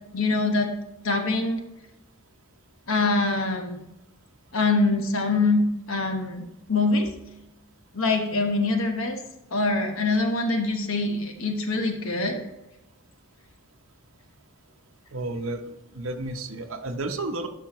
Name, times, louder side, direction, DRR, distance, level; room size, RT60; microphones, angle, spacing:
voice 1, 0.1-0.7 1.0-1.6 2.9-3.8 4.5-5.6 5.9-6.4 6.7-7.1 7.9-9.2 9.5-12.4, left 3 dB, 65° left, 4 dB, 1.1 m, -24 dB
voice 2, 15.1-17.5, right 2 dB, 65° right, 4 dB, 0.9 m, -32 dB
11.5 x 5.7 x 3.0 m, 0.92 s
head